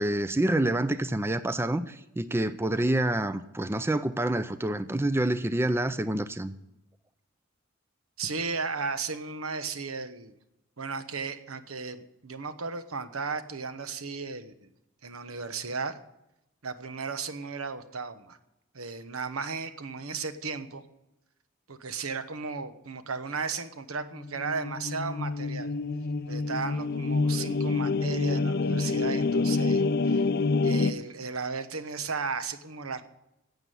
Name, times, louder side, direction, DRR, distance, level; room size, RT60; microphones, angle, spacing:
voice 1, 0.0-6.5, right 1 dB, 10° right, 0.4 m, -27 dB
voice 2, 8.2-10.3 10.8-14.5 15.0-16.0 16.6-18.4 18.7-20.8 21.7-25.7 26.3-30.3 30.6-33.0, right 4 dB, 90° right, 1.1 m, -35 dB
sound 1, 24.2-30.9, left 3 dB, 50° left, 0.5 m, -27 dB
12.0 x 8.2 x 9.1 m
head